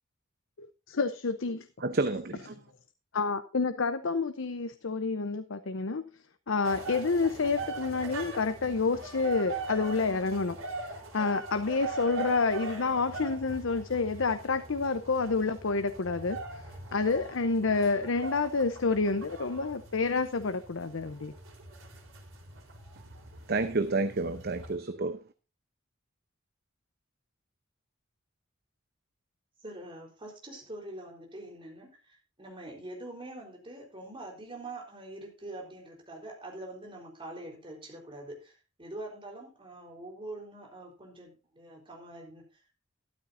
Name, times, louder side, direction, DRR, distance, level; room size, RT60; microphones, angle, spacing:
voice 1, 0.6-1.7 3.1-6.0 6.5-10.6 11.1-16.6 16.9-21.3, left 4 dB, 70° left, 0.7 m, -29 dB
voice 2, 1.8-2.6 23.5-25.2, right 3 dB, 50° right, 0.8 m, -30 dB
sound 1, 6.6-24.8, right 3 dB, 80° right, 3.9 m, -42 dB
voice 3, 29.6-42.6, right 2 dB, 25° right, 4.1 m, -44 dB
13.0 x 12.0 x 2.7 m
head